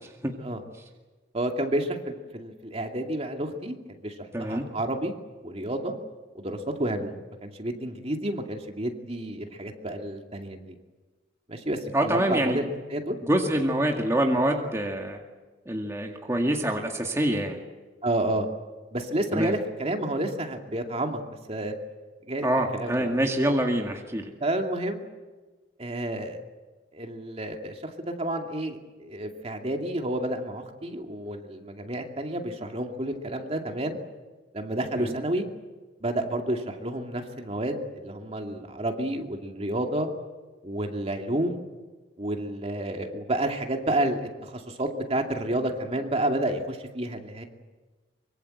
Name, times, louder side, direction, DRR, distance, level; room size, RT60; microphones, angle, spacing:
voice 1, 1.3-3.8 4.0-5.1 5.4-6.0 6.3-10.7 11.5-12.6 12.9-13.2 18.0-18.5 18.9-21.7 22.3-22.5 22.7-23.2 24.4-25.0 25.8-26.4 26.9-34.0 34.5-35.4 36.0-40.1 40.6-41.6 42.2-47.4, right 1 dB, 35° right, 3 dB, 2.5 m, -30 dB
voice 2, 4.3-4.7 11.9-12.6 13.2-15.2 15.7-17.6 19.3-19.5 22.4-24.3 35.0-35.2, right 1 dB, 15° right, 1 dB, 2.1 m, -25 dB
24.5 x 24.0 x 7.9 m, 1.3 s
head